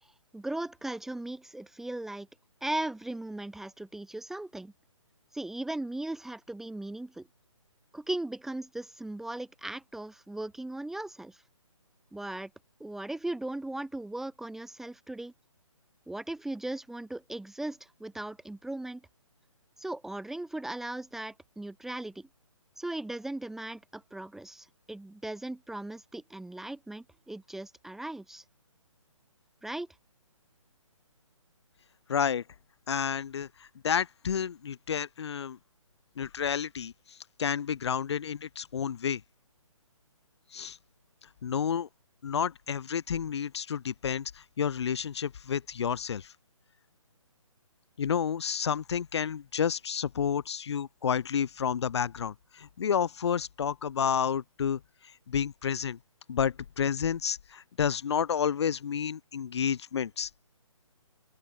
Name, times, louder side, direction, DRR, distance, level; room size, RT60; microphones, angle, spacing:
voice 1, 0.3-2.3 2.6-4.7 5.3-7.3 7.9-11.4 12.1-12.5 12.8-15.3 16.1-19.0 19.8-22.3 22.8-28.4 29.6-29.9, right 2 dB, ahead, 1.4 m, -38 dB
voice 2, 32.1-32.4 32.9-33.5 33.8-35.6 36.2-36.9 37.4-39.2 40.5-40.8 41.4-41.9 42.2-44.3 44.6-46.3 48.0-54.8 55.3-56.0 56.3-60.3, left 7 dB, 50° left, 1.6 m, -30 dB
open air
figure-of-eight pair, 150°, 17 cm